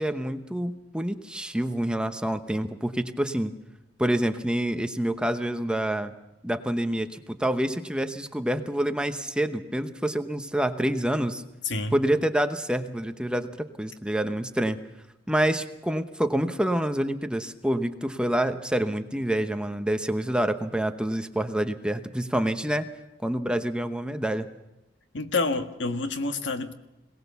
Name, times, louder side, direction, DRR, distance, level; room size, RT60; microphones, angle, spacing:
voice 1, 0.0-3.5 4.0-6.1 6.4-11.4 11.9-14.8 15.3-22.9 23.2-24.5, right 1 dB, 5° right, 8 dB, 0.9 m, -27 dB
voice 2, 11.6-12.0 25.1-26.7, left 3 dB, 80° left, 7 dB, 1.6 m, -28 dB
22.0 x 18.5 x 7.0 m, 0.93 s
head